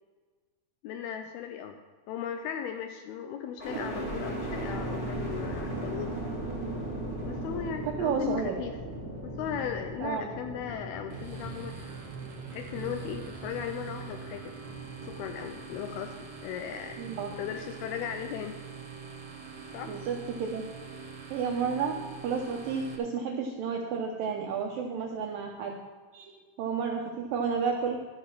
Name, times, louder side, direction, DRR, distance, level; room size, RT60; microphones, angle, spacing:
voice 1, 0.8-1.8 2.1-6.2 7.3-8.8 9.2-11.8 12.5-14.5 15.0-17.0 17.4-18.6 19.7-20.0, left 8 dB, 80° left, 6 dB, 2.3 m, -37 dB
sound 1, 3.6-17.6 18.1-18.8, right 1 dB, 15° left, 3.0 m, -38 dB
voice 2, 7.9-8.6 10.0-10.3 17.0-17.3 19.9-20.7 21.3-25.8 26.1-28.0, right 6 dB, 80° right, 1 dB, 2.0 m, -31 dB
sound 2, 11.1-23.0, right 6 dB, 60° right, 1.7 m, -43 dB
12.5 x 6.8 x 5.9 m, 1.4 s
omnidirectional pair, 4.9 m